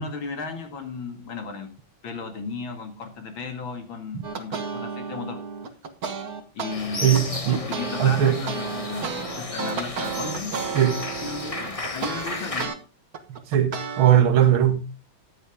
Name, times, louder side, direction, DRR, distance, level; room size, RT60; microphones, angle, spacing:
voice 1, 0.0-1.7 2.0-5.5 6.6-7.4 7.8-10.7 11.2-12.8, left 4 dB, 70° left, 2.8 m, -35 dB
sound 1, 4.2-6.8 7.1-12.8 13.1-14.2, right 5 dB, 50° right, 1.8 m, -32 dB
sound 2, 6.7-12.7, left 2 dB, 20° left, 1.2 m, -34 dB
voice 2, 7.0-7.7 8.0-8.4 10.8-11.0 13.5-14.8, right 10 dB, 80° right, 2.1 m, -19 dB
14.0 x 9.4 x 3.6 m
omnidirectional pair, 2.3 m